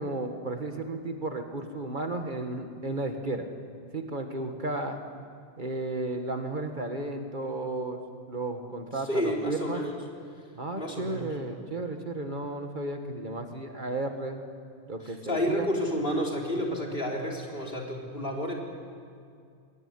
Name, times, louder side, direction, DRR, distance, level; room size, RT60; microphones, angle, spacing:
voice 1, 0.0-3.5 3.9-5.0 5.6-8.0 8.3-9.8 10.6-14.4 14.9-15.7, right 2 dB, 45° right, 5 dB, 1.7 m, -33 dB
voice 2, 9.0-10.0 10.8-11.3 15.0-18.5, equal, 50° left, 1 dB, 3.9 m, -30 dB
21.5 x 19.5 x 9.6 m, 2.3 s
omnidirectional pair, 1.2 m